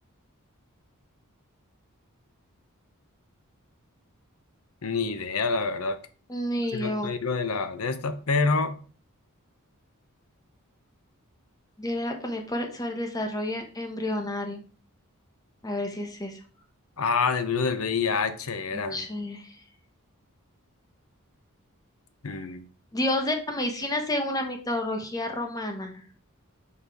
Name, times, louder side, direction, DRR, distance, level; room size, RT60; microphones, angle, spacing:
voice 1, 4.8-6.0 6.7-8.8 17.0-19.1 22.2-22.7, left 4 dB, 75° left, 0.8 m, -27 dB
voice 2, 6.3-7.1 11.8-14.6 15.6-16.4 18.7-19.6 22.9-25.9, left 1 dB, 15° left, 1.0 m, -30 dB
5.7 x 4.3 x 4.7 m
head